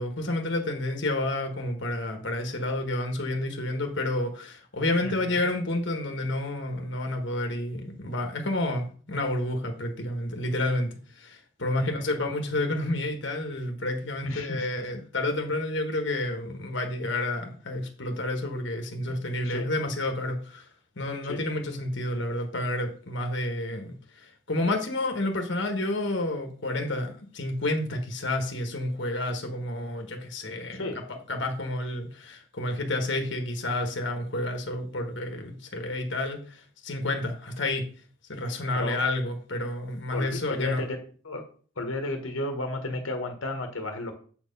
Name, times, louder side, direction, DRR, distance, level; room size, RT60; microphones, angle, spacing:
voice 1, 0.0-20.7 21.0-30.8 31.3-37.8 38.3-40.8, left 1 dB, 60° left, 1.3 m, -30 dB
voice 2, 5.0-5.4 11.8-12.2 14.2-14.7 19.1-19.2 19.4-19.7 21.3-21.4 30.7-31.0 38.7-39.0 40.1-41.0 41.2-41.4 41.8-44.1, left 2 dB, 80° left, 1.2 m, -33 dB
7.8 x 4.5 x 5.2 m
head